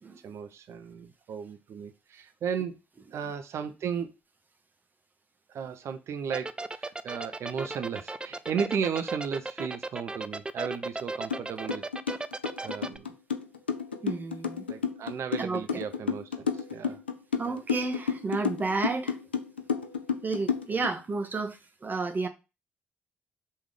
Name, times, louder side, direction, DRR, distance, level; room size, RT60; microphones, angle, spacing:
voice 1, 0.2-2.8 3.1-4.1 5.5-11.9 12.6-13.2 14.7-17.0 17.4-17.6, right 7 dB, 55° right, 0.7 m, -35 dB
sound 1, 6.3-13.0, right 2 dB, 15° right, 0.5 m, -35 dB
sound 2, 11.3-11.4 11.7-20.9, left 6 dB, 90° left, 0.4 m, -31 dB
voice 2, 14.0-14.6 15.4-15.6 17.4-19.2 20.2-22.3, right 3 dB, 30° right, 1.4 m, -31 dB
5.4 x 3.5 x 5.0 m
figure-of-eight pair, 45°, 6 cm